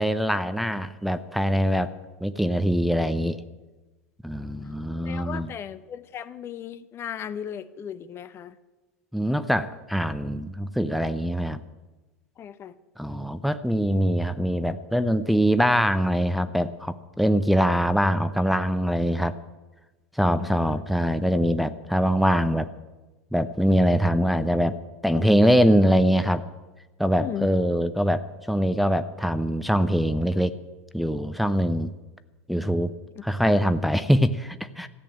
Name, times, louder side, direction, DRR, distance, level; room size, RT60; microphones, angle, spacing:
voice 1, 0.0-1.9 2.2-3.4 4.2-5.5 9.1-11.6 13.0-19.3 20.1-22.7 23.3-24.8 25.0-26.4 27.0-30.6 30.9-31.9 32.5-32.9 33.2-34.9, equal, ahead, 10 dB, 0.7 m, -23 dB
voice 2, 5.0-8.6 12.4-12.7 20.3-20.8 27.2-27.5, left 9 dB, 35° left, 14 dB, 0.7 m, -36 dB
14.0 x 8.6 x 8.7 m, 1.2 s
figure-of-eight pair, 80°, 7 cm